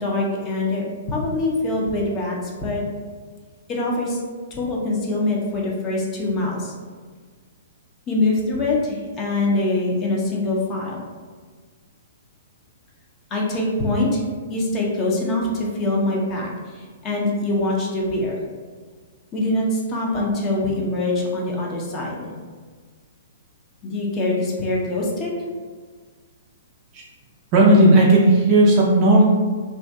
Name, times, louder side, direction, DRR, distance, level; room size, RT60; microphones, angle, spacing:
voice 1, 0.0-2.8 3.7-4.2 4.5-6.7 8.1-11.0 13.3-14.2 14.5-18.4 19.3-22.3 23.8-25.3, left 2 dB, 30° left, -2 dB, 0.6 m, -24 dB
voice 2, 27.5-29.2, right 1 dB, 40° right, -4 dB, 0.5 m, -14 dB
2.5 x 2.5 x 2.2 m, 1.5 s
hypercardioid pair, 120°, 0 cm